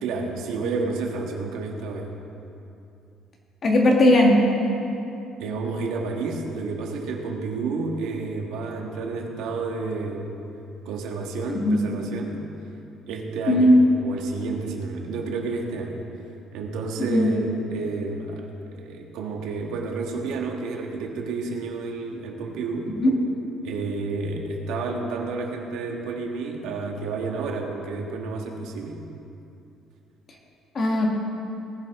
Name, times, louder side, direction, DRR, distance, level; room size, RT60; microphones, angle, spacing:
voice 1, 0.0-2.1 5.4-10.3 10.8-12.4 13.1-13.7 14.0-16.0 16.5-22.9 23.6-29.0, right 4 dB, 90° right, 1 dB, 1.7 m, -30 dB
voice 2, 3.6-4.4 11.5-11.8 13.5-13.9 17.1-17.3 23.0-23.1 30.8-31.1, left 1 dB, 30° left, 0 dB, 1.8 m, -17 dB
19.0 x 11.5 x 3.7 m, 2.7 s
cardioid pair, 180°, 0 cm